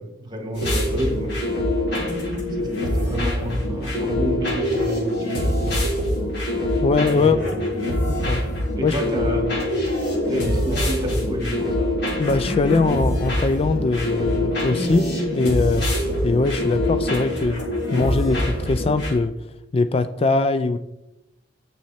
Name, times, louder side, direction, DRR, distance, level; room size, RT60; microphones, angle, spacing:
voice 1, 0.0-1.5 2.5-2.7 2.9-5.9 7.1-7.8 8.2-8.4 8.8-9.6 10.3-11.9, equal, 25° right, 3 dB, 1.9 m, -30 dB
sound 1, 0.5-19.1, left 1 dB, 65° left, 3.6 m, -24 dB
voice 2, 6.8-7.4 8.2-8.4 8.8-9.0 12.2-15.9 16.2-17.6 17.9-19.3 19.7-20.8, left 3 dB, 35° left, 11 dB, 0.3 m, -21 dB
9.2 x 7.0 x 4.3 m, 0.91 s
head